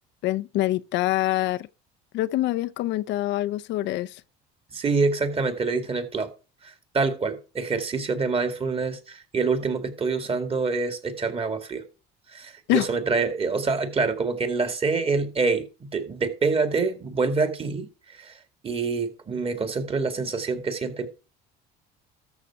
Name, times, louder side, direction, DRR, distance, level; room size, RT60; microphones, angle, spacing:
voice 1, 0.2-1.7 2.1-4.2 12.7-12.9, left 16 dB, 60° left, 0.5 m, -25 dB
voice 2, 4.7-6.3 6.6-11.8 12.3-21.1, right 4 dB, 30° right, 2.1 m, -26 dB
13.5 x 5.6 x 4.7 m
cardioid pair, 110°, 21 cm